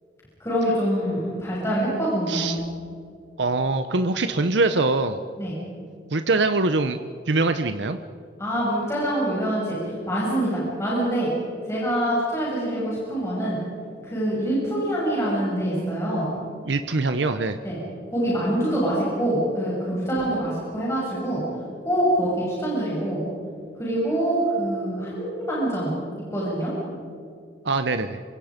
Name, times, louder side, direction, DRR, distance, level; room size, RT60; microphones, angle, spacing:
voice 1, 0.4-2.6 5.4-5.6 8.4-9.8 10.1-11.3 11.6-13.6 14.0-16.3 17.6-17.8 18.1-21.4 21.8-23.2 23.8-25.9 26.3-26.7, right 1 dB, 15° left, -7 dB, 7.3 m, -25 dB
voice 2, 2.3-2.6 3.4-5.2 6.1-7.0 7.3-8.0 16.7-17.6 27.6-28.2, right 3 dB, 80° right, 9 dB, 0.9 m, -23 dB
27.5 x 25.0 x 5.2 m, 2.4 s
head